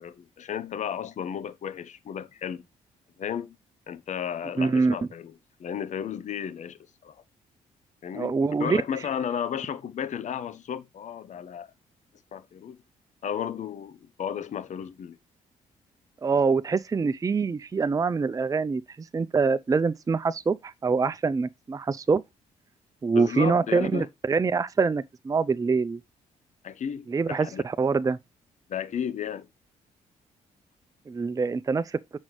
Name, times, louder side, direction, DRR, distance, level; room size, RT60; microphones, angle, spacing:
voice 1, 0.0-2.6 3.2-3.6 3.9-5.3 5.6-7.1 8.0-11.7 12.3-12.8 13.2-15.2 23.1-24.1 26.6-27.6 28.7-29.5, left 8 dB, 55° left, 0.8 m, -33 dB
voice 2, 4.6-4.9 8.1-8.8 16.2-18.8 19.1-22.2 23.0-26.0 27.1-28.2 31.1-32.0, right 4 dB, 25° right, 0.5 m, -25 dB
7.2 x 6.3 x 3.1 m
supercardioid pair, 65°, 15 cm